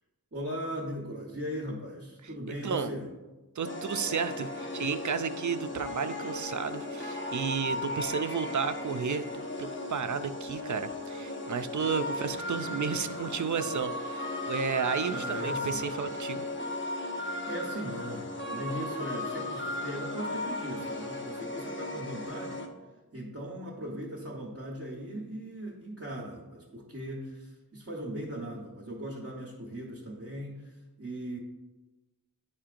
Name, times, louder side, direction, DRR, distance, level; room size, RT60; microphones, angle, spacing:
voice 1, 0.3-3.1 12.1-13.2 15.1-16.1 17.5-22.6 23.1-31.4, equal, 35° right, -4 dB, 1.1 m, -39 dB
sound 1, 3.6-22.7, left 1 dB, 30° left, 0.8 m, -36 dB
voice 2, 3.6-16.4, right 6 dB, 50° right, 10 dB, 0.4 m, -32 dB
11.0 x 4.3 x 2.5 m, 1.1 s
wide cardioid pair, 60°, 37 cm